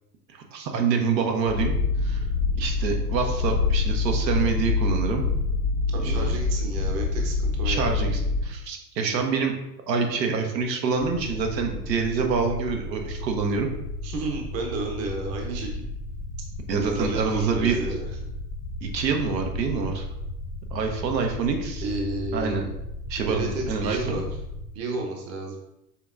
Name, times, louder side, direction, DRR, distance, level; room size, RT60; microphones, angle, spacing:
voice 1, 0.5-1.8 2.0-2.2 2.5-5.2 6.0-6.3 7.6-9.6 9.9-13.7 16.7-17.9 18.8-20.1 20.7-21.9 22.3-22.6 23.1-24.0, right 5 dB, 80° right, 3 dB, 1.0 m, -26 dB
Purr, 1.5-8.5, left 4 dB, 90° left, 1.5 m, -25 dB
voice 2, 5.9-8.0 14.0-15.9 16.8-18.1 21.8-22.6 23.2-24.2 24.7-25.6, right 2 dB, 30° right, 1 dB, 0.8 m, -31 dB
sound 1, 11.0-24.7, left 1 dB, 50° left, 0.8 m, -35 dB
5.8 x 3.4 x 2.5 m, 0.87 s
hypercardioid pair, 95°, 49 cm